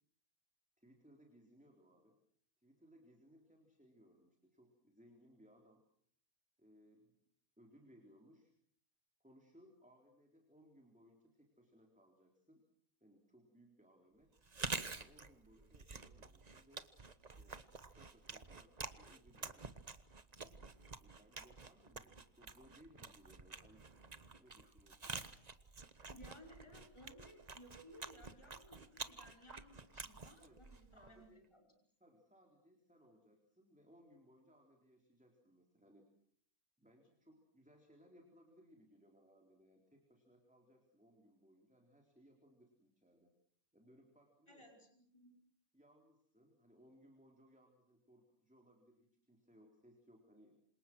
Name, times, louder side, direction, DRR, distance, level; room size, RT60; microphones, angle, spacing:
voice 1, 0.8-2.2 2.6-5.9 6.6-7.1 7.6-8.5 9.2-12.6 13.0-14.3 15.0-16.9 17.2-17.6 18.0-19.7 21.0-23.9 24.4-25.2 30.4-30.6 30.9-31.5 32.0-36.1 36.8-43.3 43.7-44.7 45.7-50.6, equal, 5° right, 2 dB, 3.8 m, -66 dB
Chewing mastication, 14.4-31.2, right 4 dB, 30° right, 1.2 m, -49 dB
voice 2, 26.1-31.7 44.5-45.3, equal, 20° left, 2 dB, 5.5 m, -60 dB
27.5 x 27.0 x 6.2 m, 0.63 s
omnidirectional pair, 1.5 m